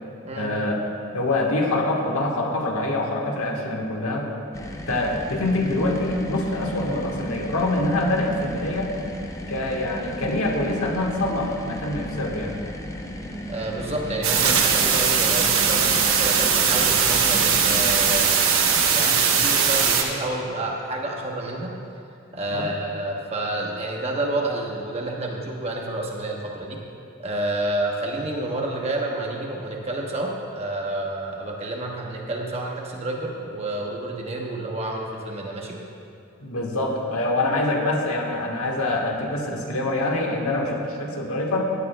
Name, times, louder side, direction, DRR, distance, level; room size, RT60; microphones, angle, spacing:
voice 1, 0.4-0.8 1.1-4.3 4.9-8.9 9.5-12.6 22.5-22.7 36.4-41.6, left 2 dB, 90° left, 0 dB, 1.3 m, -25 dB
sound 1, 4.5-18.3, left 1 dB, 15° left, 0.5 m, -35 dB
voice 2, 13.5-21.7 22.3-26.8 27.2-35.8, right 2 dB, 30° right, -1 dB, 1.0 m, -29 dB
sound 2, 14.2-20.0, right 6 dB, 70° right, 1.0 m, -20 dB
16.5 x 9.8 x 2.2 m, 2.5 s
head